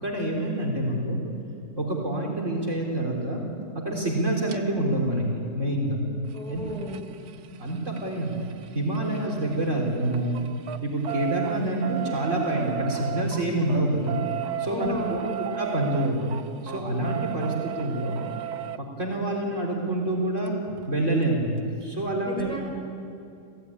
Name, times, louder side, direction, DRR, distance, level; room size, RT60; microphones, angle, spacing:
voice 1, 0.0-1.2 1.8-3.4 3.7-6.0 6.5-6.6 7.6-8.3 8.7-10.4 10.8-14.2 14.6-15.2 15.6-16.2 16.6-18.2 19.0-20.5 20.9-21.5 21.8-22.5, right 1 dB, 50° right, -1 dB, 4.1 m, -27 dB
sound 1, 4.5-4.6 6.2-9.8 10.1-18.8 20.5-20.6 20.8-20.9 21.2-21.3, right 13 dB, 90° right, 1.4 m, -35 dB
voice 2, 6.3-7.1 14.6-15.3 22.2-22.6, left 2 dB, 5° left, 1 dB, 4.8 m, -34 dB
28.5 x 16.5 x 9.7 m, 2.6 s
omnidirectional pair, 1.6 m